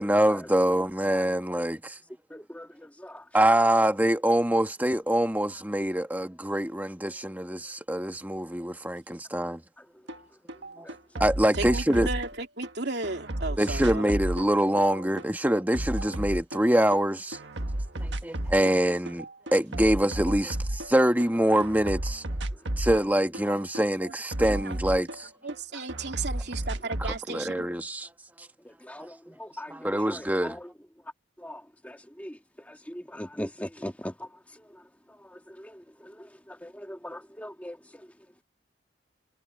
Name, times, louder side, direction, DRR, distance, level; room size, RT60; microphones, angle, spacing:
voice 1, 0.0-2.0 3.3-9.6 10.8-10.9 11.2-12.1 13.6-17.4 18.0-19.2 19.5-22.2 22.8-25.3 27.0-28.1 29.7-30.6, right 1 dB, 10° right, 1.4 m, -25 dB
voice 2, 2.3-2.7 3.0-3.2 28.8-29.1 29.4-30.3 31.4-32.3 32.9-34.1 35.6-37.8, equal, 10° left, 1.9 m, -39 dB
sound 1, 10.1-10.2 10.5-12.7 13.0-17.0 17.3-18.8 19.1-21.3 21.6-25.6 25.9-27.2, right 1 dB, 75° right, 1.6 m, -33 dB
voice 3, 11.6-14.0 24.6-24.7 25.4-27.7, right 3 dB, 60° right, 3.4 m, -34 dB
head